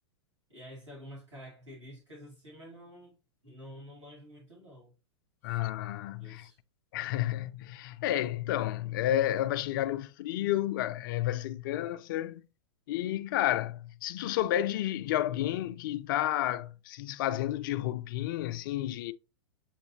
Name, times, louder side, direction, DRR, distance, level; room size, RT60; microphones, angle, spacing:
voice 1, 0.5-3.2 3.4-4.9 5.4-5.6 6.2-6.6, equal, 85° right, 2.1 m, -49 dB
voice 2, 5.4-6.5 6.9-12.4 12.9-19.1, left 13 dB, 45° left, 0.4 m, -31 dB
7.1 x 2.7 x 2.7 m
figure-of-eight pair, 100°, 15 cm